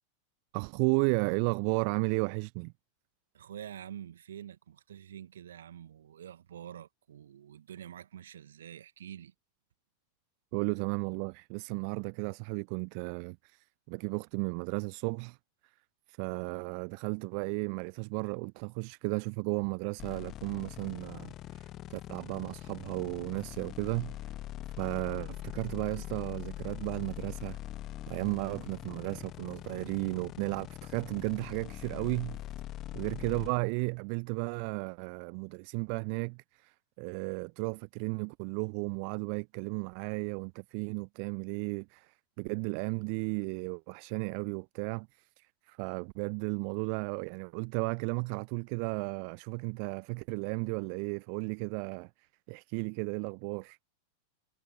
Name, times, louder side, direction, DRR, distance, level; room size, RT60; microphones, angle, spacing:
voice 1, 0.5-2.7 10.5-15.4 16.1-24.2 24.8-27.6 28.1-32.4 32.9-52.1 52.5-53.9, right 40 dB or more, 45° right, 0.3 m, -34 dB
voice 2, 3.3-9.3, right 10 dB, 65° right, 2.2 m, -47 dB
sound 1, 20.0-33.5, left 14 dB, 35° left, 1.2 m, -43 dB
figure-of-eight pair, 90°, 0 cm